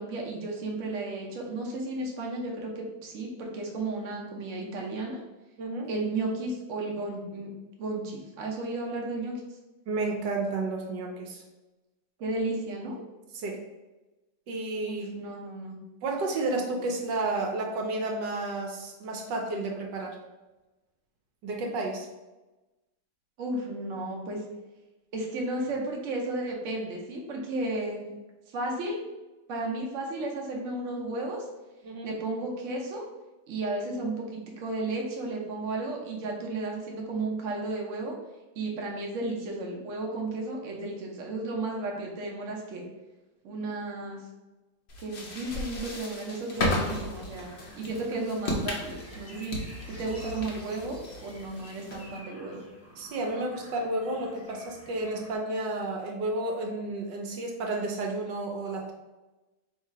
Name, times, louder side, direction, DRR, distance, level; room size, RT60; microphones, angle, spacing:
voice 1, 0.0-5.2 5.9-7.5 7.8-9.4 12.2-13.0 14.9-15.8 23.4-24.4 25.1-28.0 28.5-29.0 29.5-31.5 32.0-33.1 33.5-38.2 38.5-42.8 43.4-44.3 45.0-47.5 47.7-49.6 49.9-52.6, right 2 dB, 55° right, -1 dB, 1.0 m, -33 dB
voice 2, 5.6-5.9 9.9-11.4 13.3-13.6 14.5-15.1 16.0-20.2 21.4-22.1 31.8-32.1 53.0-58.9, right 2 dB, 75° right, 0 dB, 1.3 m, -31 dB
sound 1, 44.9-52.2, left 1 dB, 50° left, 0.8 m, -35 dB
sound 2, 47.3-55.4, equal, 10° left, 0.9 m, -51 dB
3.2 x 2.8 x 4.5 m, 1.1 s
omnidirectional pair, 1.9 m